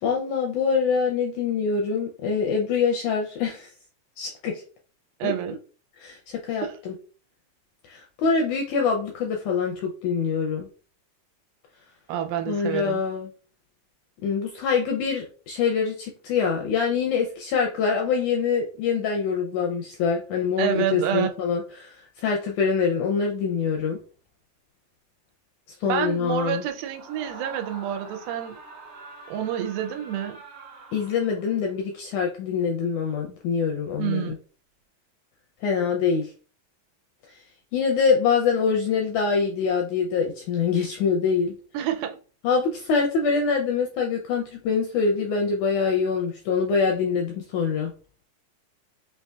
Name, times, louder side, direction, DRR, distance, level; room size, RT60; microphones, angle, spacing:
voice 1, 0.0-3.7 4.2-4.6 5.2-5.3 6.0-6.9 7.9-10.7 12.5-13.3 14.2-24.0 25.8-26.6 30.9-34.4 35.6-36.3 37.7-41.6 42.4-47.9, left 5 dB, 80° left, 1.7 m, -24 dB
voice 2, 5.2-5.6 6.6-6.8 12.1-13.0 20.6-21.3 25.9-28.6 29.3-30.4 34.0-34.3 41.7-42.2, right 10 dB, 90° right, 2.3 m, -28 dB
Screaming, 26.8-31.7, right 2 dB, 70° right, 1.5 m, -45 dB
5.5 x 2.7 x 2.3 m
omnidirectional pair, 4.0 m